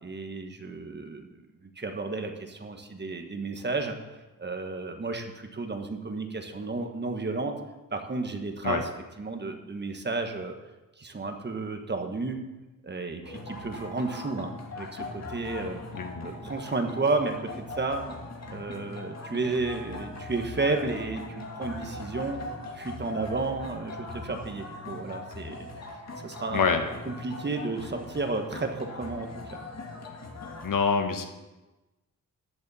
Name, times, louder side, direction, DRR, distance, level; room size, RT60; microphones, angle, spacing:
voice 1, 0.0-3.9 4.4-7.6 7.9-8.9 9.2-10.5 11.0-12.4 12.8-15.8 16.2-18.0 18.5-22.4 22.7-25.7 26.2-26.8 27.0-29.3, right 3 dB, 30° right, 4 dB, 1.3 m, -32 dB
sound 1, 13.2-30.7, left 2 dB, 50° left, 1.8 m, -40 dB
voice 2, 15.9-16.3 26.5-26.8 30.6-31.3, left 5 dB, 70° left, 6 dB, 1.4 m, -26 dB
14.0 x 10.5 x 4.2 m, 1.1 s
wide cardioid pair, 125°, 34 cm